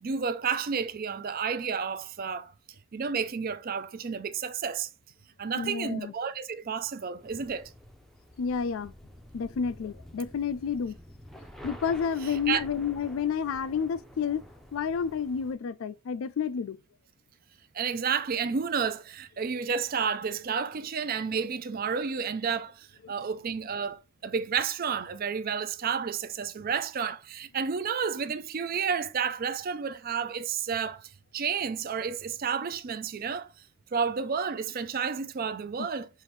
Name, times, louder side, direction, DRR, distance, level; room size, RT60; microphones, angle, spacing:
voice 1, 0.0-2.5 2.9-4.9 5.4-7.7 12.5-12.6 17.7-33.5 33.9-36.1, right 6 dB, 45° right, 0.4 m, -31 dB
voice 2, 5.6-6.1 8.4-8.9 9.3-11.0 11.6-14.5 14.7-16.8 23.0-23.1 35.8-35.9, left 6 dB, 85° left, 0.4 m, -30 dB
sound 1, 7.2-15.5, equal, ahead, 0.5 m, -49 dB
5.5 x 2.6 x 3.1 m
head